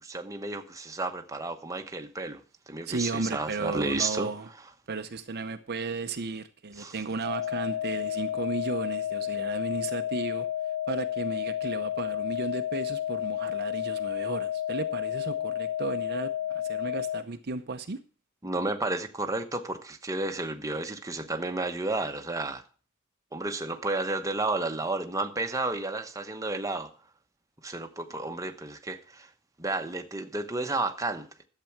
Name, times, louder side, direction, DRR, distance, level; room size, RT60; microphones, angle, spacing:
voice 1, 0.0-2.4 2.7-4.3 6.8-6.9 18.4-22.6 23.3-26.9 27.6-29.3 29.6-31.3, right 2 dB, 15° right, 1.0 m, -32 dB
voice 2, 2.9-4.5 4.9-10.5 10.9-18.0, right 3 dB, 50° right, 0.7 m, -34 dB
sound 1, 7.2-17.2, left 11 dB, 55° left, 0.5 m, -31 dB
12.0 x 7.6 x 5.9 m
head